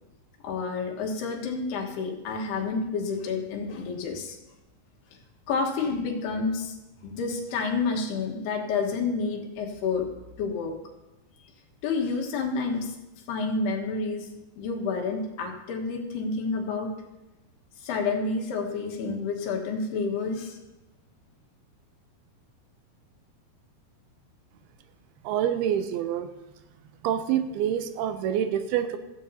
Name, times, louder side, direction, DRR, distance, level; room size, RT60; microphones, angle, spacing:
voice 1, 0.4-4.4 5.5-6.7 7.0-10.1 10.4-10.7 11.8-13.0 13.3-14.3 14.6-16.9 17.8-20.6, left 4 dB, 80° left, 2 dB, 3.4 m, -29 dB
voice 2, 25.2-26.3 27.0-29.0, right 10 dB, 80° right, 9 dB, 2.5 m, -26 dB
15.5 x 14.5 x 2.8 m, 1.0 s
omnidirectional pair, 4.7 m